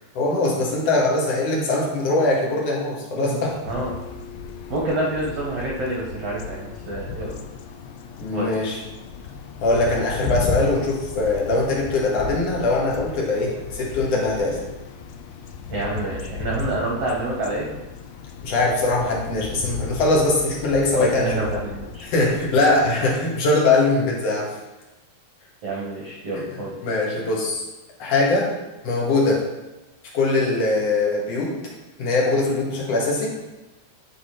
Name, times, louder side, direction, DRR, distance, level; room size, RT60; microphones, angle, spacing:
voice 1, 0.1-3.6 8.2-8.8 9.6-14.6 18.4-21.3 22.0-24.5 26.8-27.6 28.0-28.5 28.8-29.4 30.1-31.6 32.0-33.3, left 2 dB, 50° left, -3 dB, 2.3 m, -21 dB
sound 1, 3.7-23.2, left 5 dB, 80° left, 2.3 m, -35 dB
voice 2, 4.7-7.4 8.3-8.5 15.7-17.7 20.9-22.1 25.6-26.7, right 1 dB, 60° right, -4 dB, 1.6 m, -27 dB
12.5 x 5.4 x 3.2 m, 1.0 s
omnidirectional pair, 4.6 m